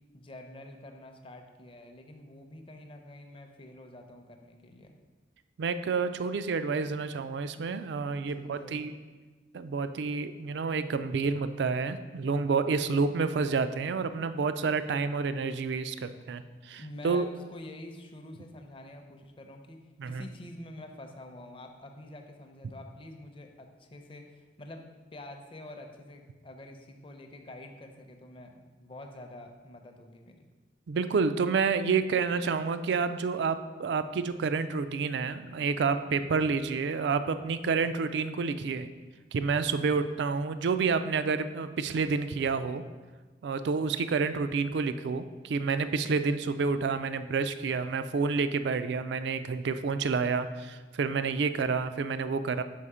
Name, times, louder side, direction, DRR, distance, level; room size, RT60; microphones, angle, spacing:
voice 1, 0.1-5.0 8.2-8.9 12.9-13.2 16.7-24.8 25.1-30.5 36.3-36.5 37.8-38.0 39.8-40.1 43.7-43.9, left 1 dB, 30° left, 4 dB, 0.6 m, -47 dB
voice 2, 5.6-8.9 9.5-17.3 20.0-20.2 30.9-38.9 39.3-42.8 43.4-52.6, right 4 dB, 65° right, 11 dB, 0.4 m, -29 dB
5.6 x 4.9 x 4.9 m, 1.3 s
head